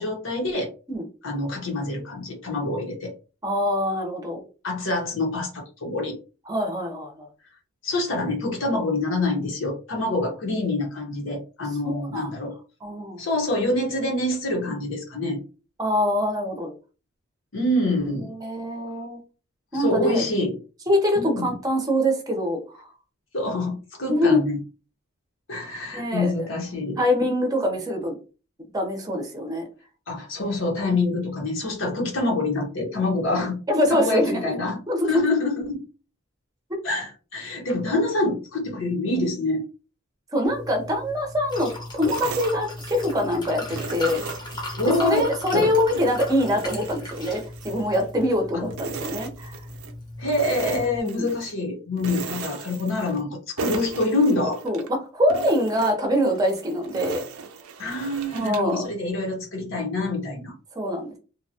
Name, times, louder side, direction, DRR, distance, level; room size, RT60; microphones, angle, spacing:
voice 1, 0.0-0.7 1.2-3.1 4.6-6.2 7.8-12.5 13.2-15.4 17.5-18.3 19.7-20.6 21.1-21.5 23.3-24.6 25.5-27.0 30.1-33.6 33.9-34.8 35.1-35.8 36.8-39.6 44.8-45.2 45.5-45.7 48.5-48.7 50.2-54.6 57.8-60.5, left 2 dB, 65° left, 1 dB, 0.9 m, -26 dB
voice 2, 3.4-4.4 6.5-7.3 11.8-12.3 12.8-13.2 14.7-14.8 15.8-16.7 18.4-19.2 19.7-20.2 20.9-22.9 24.1-24.4 25.9-26.3 27.0-28.2 28.7-29.6 33.7-34.5 34.9-35.3 36.7-36.8 40.3-44.2 45.0-49.6 50.7-51.3 54.6-57.2 58.3-58.9 60.8-61.1, left 1 dB, 15° right, 2 dB, 0.7 m, -24 dB
Liquid, 40.5-51.0, left 1 dB, 20° left, 0.8 m, -37 dB
sound 1, 42.0-43.3 43.7-45.3 45.7-48.4 48.7-50.0 50.3-51.5 52.0-53.3 53.6-54.9 55.3-58.8, right 5 dB, 90° right, 0.4 m, -37 dB
2.7 x 2.2 x 2.7 m, 0.34 s
head